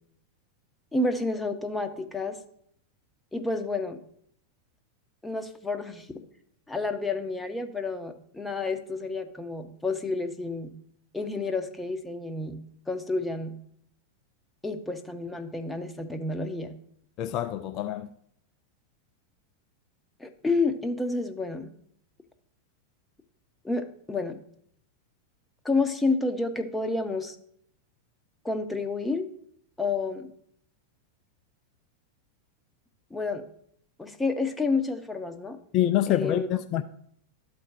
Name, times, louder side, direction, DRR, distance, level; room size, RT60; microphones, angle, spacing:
voice 1, 0.9-2.4 3.3-4.0 5.2-6.1 6.7-10.7 11.1-13.6 14.6-16.7 20.2-21.7 23.6-24.4 25.6-27.4 28.4-29.3 29.8-30.3 33.1-33.4 34.0-35.6 36.1-36.5, left 3 dB, 5° left, 0.7 m, -30 dB
voice 2, 17.2-18.1 35.7-36.8, left 12 dB, 35° left, 0.3 m, -26 dB
12.5 x 4.3 x 3.0 m
figure-of-eight pair, 90°, 0 cm